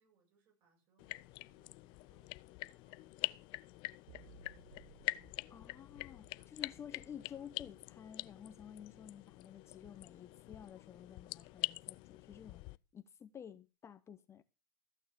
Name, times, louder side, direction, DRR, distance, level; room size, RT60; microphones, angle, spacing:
voice 1, 0.0-5.8 6.0-7.5, right 5 dB, 50° right, 8.0 m, -75 dB
sound 1, 1.0-12.8, left 22 dB, 45° left, 0.5 m, -45 dB
sound 2, 4.1-11.3, right 6 dB, 75° right, 2.3 m, -64 dB
voice 2, 5.5-12.6 12.9-14.4, left 8 dB, 25° left, 0.9 m, -52 dB
14.5 x 6.6 x 6.5 m
hypercardioid pair, 105°, 11 cm